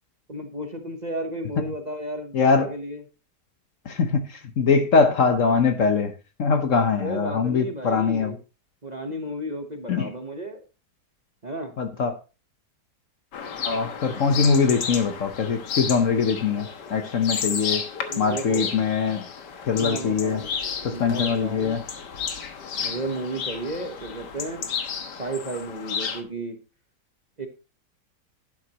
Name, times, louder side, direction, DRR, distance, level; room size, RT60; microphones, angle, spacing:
voice 1, 0.3-3.0 7.0-8.4 8.8-10.6 11.4-11.7 18.1-18.8 19.7-20.6 20.9-21.8 22.8-24.7 25.1-26.6 27.4-27.5, right 1 dB, 30° right, 5 dB, 1.0 m, -33 dB
voice 2, 2.3-2.7 3.8-6.1 6.4-8.4 9.9-10.1 11.8-12.1 13.6-17.8 18.2-19.3 19.7-20.4 20.8-21.8, left 5 dB, 55° left, 8 dB, 1.2 m, -22 dB
sound 1, 13.3-26.2, left 6 dB, 90° left, 1.9 m, -32 dB
11.5 x 9.8 x 3.0 m, 0.32 s
omnidirectional pair, 1.8 m